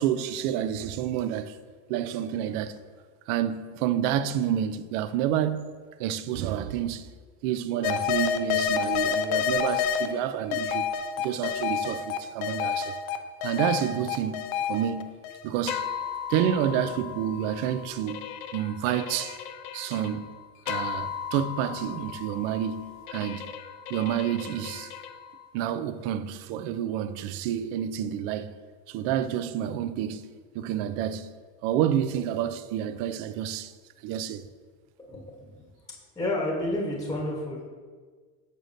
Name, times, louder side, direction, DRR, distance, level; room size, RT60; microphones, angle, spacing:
voice 1, 0.0-1.6 1.9-2.8 3.3-5.7 6.0-7.1 7.4-10.9 11.2-13.0 13.4-15.1 15.4-15.9 16.3-18.3 18.5-19.4 19.7-20.3 20.7-23.5 23.9-24.9 25.5-28.6 28.9-30.3 30.5-31.3 31.6-33.7 34.0-34.5, right 10 dB, 75° right, 0.5 m, -29 dB
sound 1, 7.8-10.1 10.5-25.5, left 7 dB, 75° left, 0.6 m, -31 dB
voice 2, 35.0-35.5 36.1-37.6, left 1 dB, 10° left, 1.0 m, -30 dB
6.7 x 6.3 x 2.6 m
cardioid pair, 135°, 38 cm